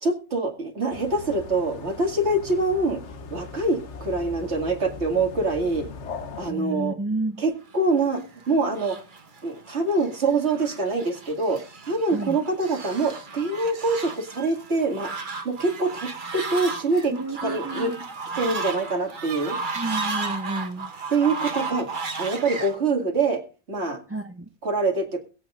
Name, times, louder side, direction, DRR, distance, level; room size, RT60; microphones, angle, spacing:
voice 1, 0.0-3.0 3.3-5.9 6.4-7.0 7.4-9.0 9.4-11.6 11.9-15.1 15.4-17.1 17.4-17.9 18.4-19.6 21.1-21.9 22.2-23.4 23.7-24.0 24.6-25.2, right 3 dB, 75° right, 4 dB, 2.4 m, -25 dB
sound 1, 0.9-6.5, left 5 dB, 85° left, 1.4 m, -39 dB
voice 2, 6.5-7.4 12.1-12.4 17.1-18.0 19.8-20.9 24.1-24.5, right 2 dB, 15° right, 6 dB, 0.5 m, -30 dB
Fowl, 7.9-22.8, right 4 dB, 45° right, 1.3 m, -34 dB
22.0 x 8.5 x 2.5 m, 0.33 s
omnidirectional pair, 1.2 m